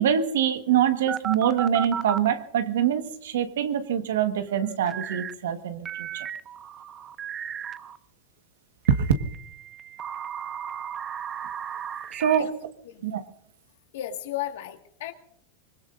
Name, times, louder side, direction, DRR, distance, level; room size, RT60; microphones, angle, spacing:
voice 1, 0.0-6.2 9.0-9.1 12.2-12.5 13.0-13.2, right 9 dB, 85° right, 9 dB, 1.5 m, -25 dB
sound 1, 1.1-2.3 4.9-5.3 5.8-8.0 8.8-12.4, right 8 dB, 30° right, 0.7 m, -35 dB
voice 2, 13.9-15.1, left 13 dB, 75° left, 5 dB, 1.9 m, -34 dB
24.5 x 21.0 x 2.6 m, 0.70 s
supercardioid pair, 125°, 0 cm